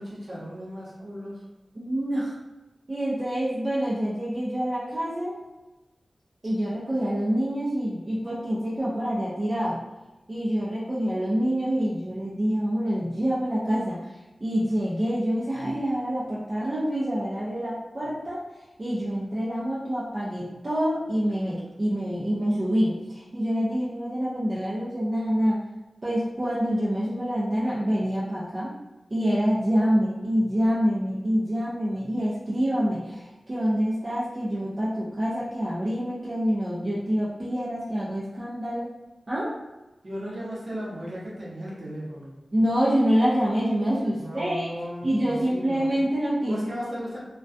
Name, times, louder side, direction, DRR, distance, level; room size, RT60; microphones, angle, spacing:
voice 1, 0.0-1.4 40.0-42.4 44.2-45.9 46.5-47.2, equal, 60° right, -6 dB, 0.8 m, -36 dB
voice 2, 1.8-2.4 2.9-5.4 6.4-9.8 10.3-14.1 14.4-18.4 18.8-25.6 26.0-28.7 29.1-38.9 39.3-39.5 42.5-44.7 45.0-46.7, equal, 35° right, -8 dB, 0.5 m, -26 dB
2.2 x 2.2 x 2.5 m, 1.1 s
wide cardioid pair, 85°, 0 cm